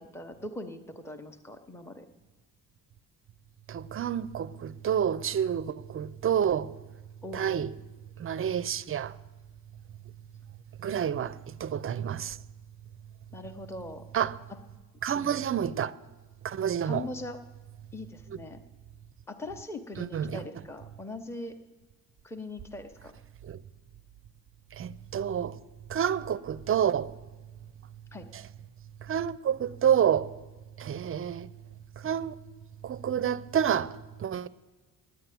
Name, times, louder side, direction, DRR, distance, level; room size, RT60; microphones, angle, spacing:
voice 1, 0.0-2.1 7.2-7.6 13.3-14.0 16.8-17.4 17.9-18.6 19.3-21.6 22.2-23.1 28.1-28.3, left 2 dB, 5° left, 0.8 m, -41 dB
voice 2, 3.7-6.7 7.3-7.7 8.2-9.2 10.8-12.4 14.1-14.4 15.0-15.9 16.4-17.1 20.0-20.4 23.4-23.6 24.7-25.6 25.9-27.2 28.3-28.4 29.0-30.4 30.8-31.5 32.0-32.4 32.8-34.5, right 9 dB, 35° right, 0.5 m, -29 dB
10.0 x 9.6 x 9.2 m
cardioid pair, 120°, 36 cm